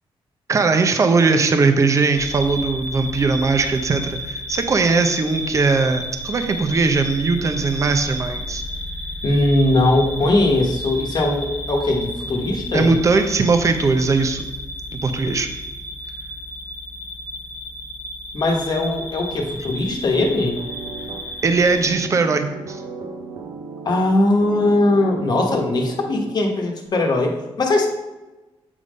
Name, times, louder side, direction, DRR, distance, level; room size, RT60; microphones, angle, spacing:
voice 1, 0.5-8.6 12.7-14.5 14.9-15.5 21.4-22.8, right 4 dB, 30° right, 7 dB, 0.6 m, -19 dB
sound 1, 2.1-21.9, left 1 dB, 15° left, 0.9 m, -32 dB
voice 2, 9.2-12.9 18.3-20.6 23.8-27.9, left 2 dB, 45° left, 1 dB, 1.1 m, -20 dB
sound 2, 20.6-26.5, right 4 dB, 60° right, 0.8 m, -36 dB
8.1 x 3.6 x 5.1 m, 1.1 s
cardioid pair, 120°, 10 cm